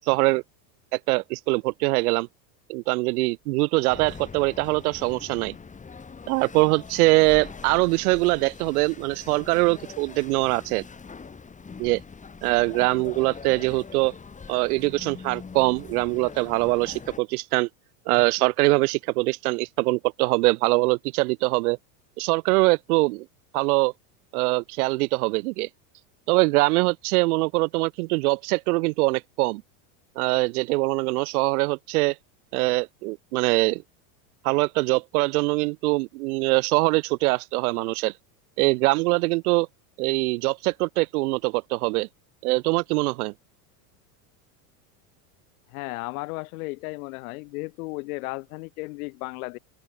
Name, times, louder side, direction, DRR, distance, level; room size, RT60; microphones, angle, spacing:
voice 1, 0.1-0.4 0.9-2.3 2.7-5.5 6.3-10.8 11.8-12.0 12.4-14.1 14.5-17.7 18.1-21.8 22.2-23.2 23.5-23.9 24.3-25.7 26.3-29.6 30.2-32.2 32.5-33.8 34.4-38.1 38.6-39.7 40.0-42.1 42.4-43.3, right 24 dB, 70° right, 0.9 m, -23 dB
sound 1, 3.9-17.2, left 5 dB, 15° left, 7.0 m, -42 dB
voice 2, 45.7-49.6, left 25 dB, 65° left, 1.2 m, -34 dB
open air
supercardioid pair, 135°, 46 cm